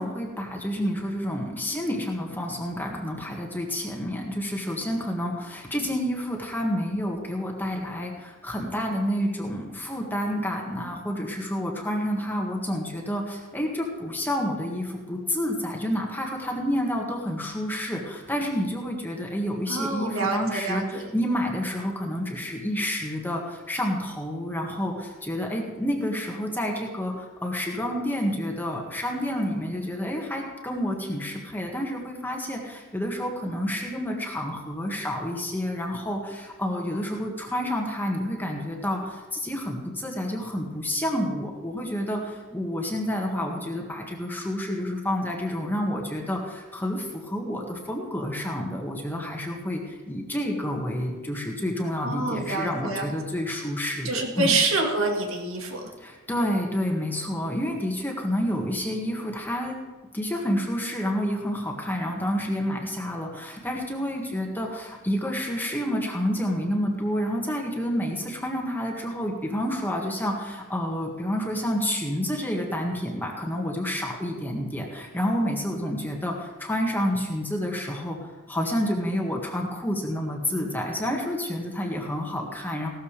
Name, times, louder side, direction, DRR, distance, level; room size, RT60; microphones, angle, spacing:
voice 1, 0.0-54.6 56.0-59.8 60.1-82.9, equal, 10° left, 0 dB, 1.9 m, -29 dB
voice 2, 19.7-21.0 52.0-53.1 54.0-55.8, right 3 dB, 70° right, 1 dB, 2.0 m, -26 dB
17.0 x 13.5 x 3.5 m, 1.2 s
head